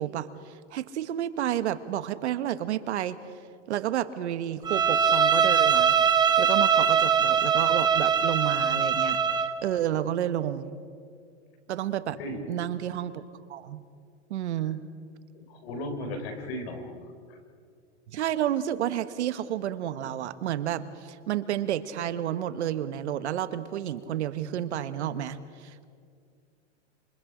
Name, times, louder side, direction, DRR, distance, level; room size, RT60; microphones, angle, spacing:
voice 1, 0.0-3.2 3.7-6.0 6.4-10.6 11.7-12.2 12.5-13.2 13.5-13.8 14.3-14.8 18.1-25.7, right 11 dB, 75° right, 12 dB, 1.4 m, -30 dB
Bowed string instrument, 4.6-9.6, right 7 dB, 10° right, 1.1 m, -22 dB
voice 2, 15.3-16.9 17.3-17.4, left 1 dB, 60° left, 5 dB, 5.0 m, -36 dB
27.5 x 27.0 x 5.1 m, 2.2 s
supercardioid pair, 140°, 34 cm